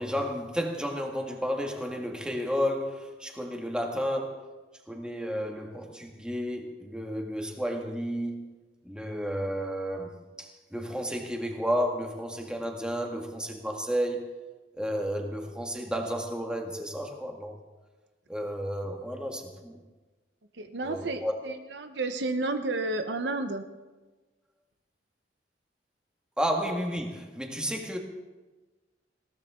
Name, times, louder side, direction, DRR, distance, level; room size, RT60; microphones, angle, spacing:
voice 1, 0.0-4.5 4.9-8.5 8.8-14.3 14.7-17.6 18.3-19.8 20.8-21.4 26.4-28.0, equal, 5° right, 1.9 m, -32 dB
voice 2, 20.5-23.6, right 2 dB, 75° right, 1.0 m, -31 dB
20.5 x 17.5 x 3.8 m
head